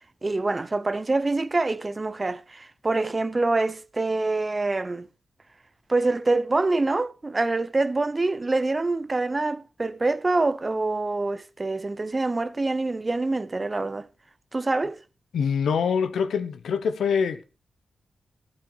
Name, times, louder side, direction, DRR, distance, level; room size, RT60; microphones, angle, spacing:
voice 1, 0.2-5.1 5.9-14.1 14.5-15.0, right 2 dB, 30° right, 0.7 m, -25 dB
voice 2, 15.3-17.4, left 6 dB, 90° left, 1.1 m, -24 dB
15.0 x 8.2 x 4.5 m
cardioid pair, 75°, 0 cm